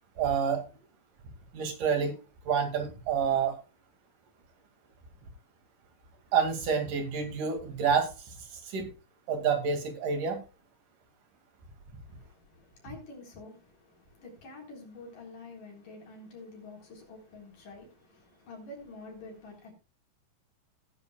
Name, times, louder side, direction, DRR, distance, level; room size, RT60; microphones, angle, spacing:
voice 1, 0.2-0.6 1.5-2.1 2.5-3.5 6.3-8.1 8.7-8.9 9.3-10.4, right 6 dB, 65° right, 3.6 m, -28 dB
voice 2, 12.1-19.7, left 2 dB, 65° left, 5.3 m, -48 dB
18.0 x 9.9 x 2.3 m
omnidirectional pair, 4.1 m